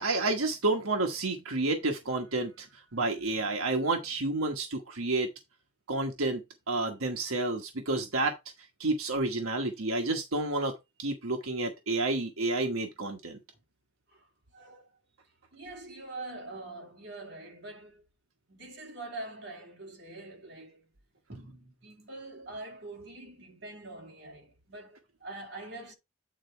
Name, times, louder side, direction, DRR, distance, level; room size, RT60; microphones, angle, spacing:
voice 1, 0.0-5.3 5.9-8.4 8.8-13.4, right 2 dB, 85° right, 1.2 m, -30 dB
voice 2, 14.1-14.9 15.5-18.0 18.5-20.9 21.3-25.9, right 2 dB, 55° right, 2.8 m, -44 dB
9.0 x 4.0 x 4.5 m
head